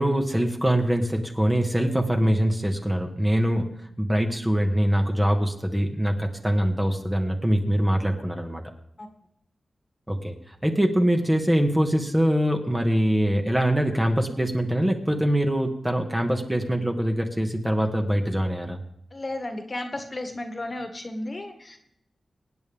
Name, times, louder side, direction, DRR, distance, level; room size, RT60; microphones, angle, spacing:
voice 1, 0.0-3.7 4.0-8.6 10.1-18.8, equal, 15° right, 3 dB, 1.7 m, -23 dB
voice 2, 19.1-21.8, left 2 dB, 35° left, 5 dB, 1.8 m, -33 dB
24.5 x 9.3 x 3.6 m, 0.76 s
wide cardioid pair, 90°, 0 cm